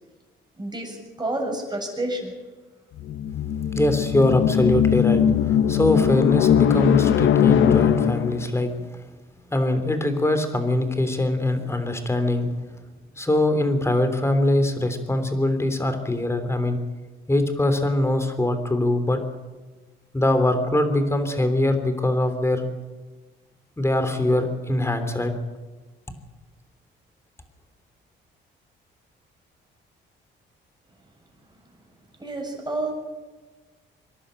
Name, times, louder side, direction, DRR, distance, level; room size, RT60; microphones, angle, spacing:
voice 1, 0.6-2.3 32.2-32.9, right 2 dB, 20° right, 1 dB, 7.4 m, -29 dB
sound 1, 3.0-8.5, left 9 dB, 75° left, 1.2 m, -20 dB
voice 2, 3.7-8.7 9.5-12.5 13.2-16.8 17.3-19.2 20.1-22.7 23.8-25.3, left 1 dB, 15° left, 8 dB, 3.3 m, -22 dB
26.0 x 11.0 x 9.0 m, 1.3 s
cardioid pair, 90°, 20 cm